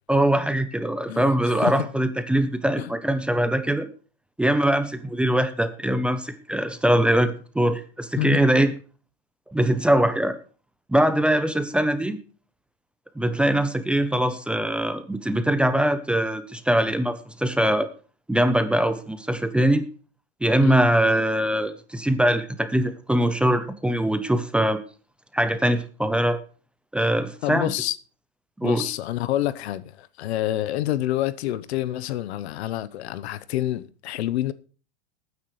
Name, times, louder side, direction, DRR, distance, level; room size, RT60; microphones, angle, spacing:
voice 1, 0.1-3.9 4.4-8.7 9.5-10.4 10.9-12.2 13.2-17.9 18.3-19.8 20.4-24.8 25.3-26.4 26.9-27.7 28.6-28.9, right 1 dB, 5° right, 0.6 m, -22 dB
voice 2, 1.1-1.7 2.8-2.9 8.2-8.4 20.6-20.9 27.4-28.0 28.6-34.5, left 13 dB, 80° left, 0.9 m, -28 dB
19.0 x 9.6 x 3.2 m
supercardioid pair, 150°, 32 cm